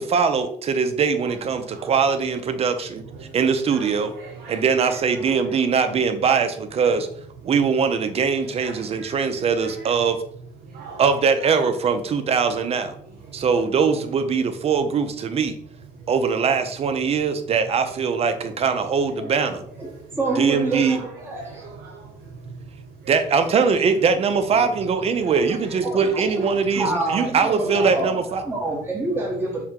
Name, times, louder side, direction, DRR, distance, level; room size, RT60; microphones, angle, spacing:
voice 1, 0.0-3.0 3.3-4.1 4.5-7.1 7.4-10.2 11.0-12.9 13.3-15.6 16.1-19.6 20.4-21.0 23.1-28.4, right 5 dB, 35° right, 0.5 m, -21 dB
voice 2, 1.3-2.6 3.0-3.4 3.7-5.6 6.8-7.0 7.4-7.5 8.2-10.0 10.6-11.0 11.4-11.5 12.5-12.7 13.1-13.6 15.9-16.1 19.8-23.1 25.2-26.9 27.5-27.9, right 4 dB, 65° right, 0.8 m, -42 dB
voice 3, 20.1-21.7 24.6-24.7 25.4-25.5 25.8-29.6, right 2 dB, 15° right, 0.9 m, -27 dB
4.5 x 2.2 x 3.6 m
cardioid pair, 110°, 17 cm